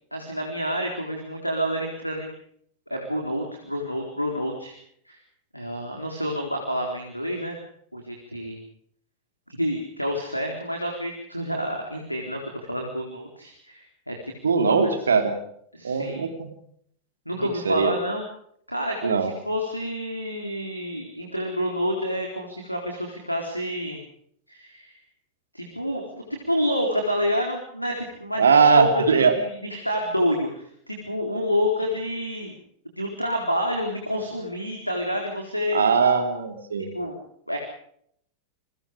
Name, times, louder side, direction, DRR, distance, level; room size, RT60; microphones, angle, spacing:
voice 1, 0.1-2.3 2.9-4.8 5.1-5.2 5.5-7.6 7.9-8.6 9.5-14.9 15.7-16.2 17.3-18.2 18.7-24.0 24.5-24.9 25.5-32.6 33.0-35.9 36.8-37.2 37.5-37.6, equal, 90° left, 1 dB, 4.2 m, -28 dB
voice 2, 14.4-15.3 15.8-16.5 17.6-17.9 19.0-19.3 28.3-29.3 35.7-36.9, right 5 dB, 70° right, 7 dB, 3.4 m, -20 dB
28.5 x 22.5 x 5.1 m, 0.68 s
figure-of-eight pair, 90°, 0 cm